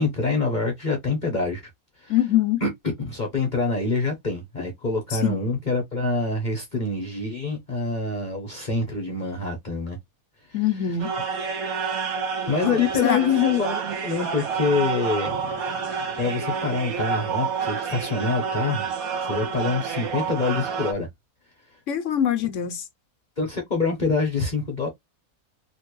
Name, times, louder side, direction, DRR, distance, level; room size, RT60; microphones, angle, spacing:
voice 1, 0.0-1.6 2.0-2.2 2.6-10.0 10.5-11.0 12.5-15.6 16.2-18.9 19.2-21.1 23.4-24.9, left 4 dB, 35° left, 0.9 m, -26 dB
voice 2, 2.1-2.6 5.1-5.4 10.5-11.1 12.6-13.2 21.9-22.8, left 10 dB, 65° left, 0.9 m, -24 dB
sound 1, 11.0-20.9, right 6 dB, 75° right, 1.3 m, -29 dB
3.1 x 2.9 x 3.0 m
omnidirectional pair, 1.6 m